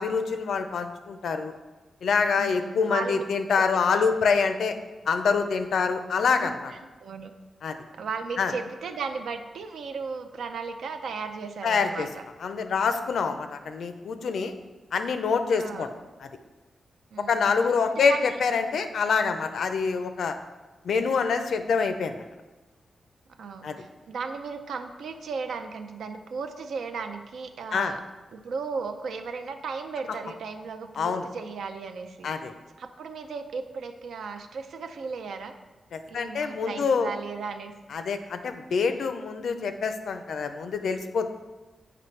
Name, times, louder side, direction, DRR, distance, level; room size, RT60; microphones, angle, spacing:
voice 1, 0.0-1.5 2.0-4.8 5.1-6.7 7.6-7.8 8.4-8.5 11.6-12.1 12.4-14.5 14.9-15.9 16.2-16.3 17.3-20.4 20.8-22.2 23.6-23.8 27.7-27.9 31.0-31.3 32.2-32.5 35.9-37.1 37.9-41.3, left 5 dB, 75° left, 8 dB, 0.5 m, -26 dB
voice 2, 2.3-3.2 3.6-3.7 3.9-4.1 6.4-7.3 7.9-12.2 15.6-15.9 17.1-17.5 18.0-18.2 23.4-28.0 28.3-32.3 32.8-35.5 36.1-37.7, right 5 dB, 85° right, 7 dB, 0.4 m, -36 dB
7.7 x 5.0 x 3.2 m, 1.2 s
wide cardioid pair, 175°, 0 cm